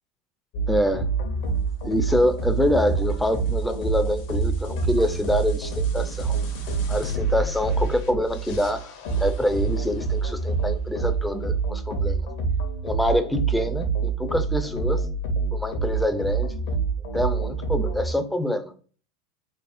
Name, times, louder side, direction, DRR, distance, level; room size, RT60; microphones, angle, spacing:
sound 1, 0.5-18.1, right 5 dB, 70° left, 0.8 m, -27 dB
voice 1, 0.7-1.1 1.8-6.3 6.9-8.8 9.2-12.2 12.8-15.1 15.5-16.5 17.1-18.7, left 1 dB, 5° left, 0.4 m, -25 dB
sound 2, 5.9-8.6 9.5-10.5, right 2 dB, 75° right, 0.6 m, -41 dB
3.3 x 2.3 x 2.5 m
supercardioid pair, 130°, 0 cm